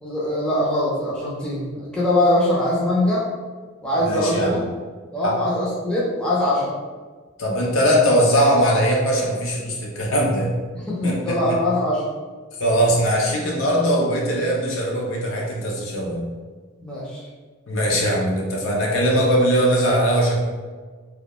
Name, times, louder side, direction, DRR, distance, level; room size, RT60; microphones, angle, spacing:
voice 1, 0.0-3.2 3.8-4.6 5.1-6.8 10.7-12.0 16.8-17.2, left 1 dB, 5° left, -7 dB, 0.4 m, -22 dB
voice 2, 4.0-4.6 5.2-5.4 7.4-10.5 11.0-11.6 12.6-16.2 17.7-20.4, equal, 70° left, -2 dB, 0.5 m, -20 dB
2.2 x 2.1 x 2.8 m, 1.5 s
head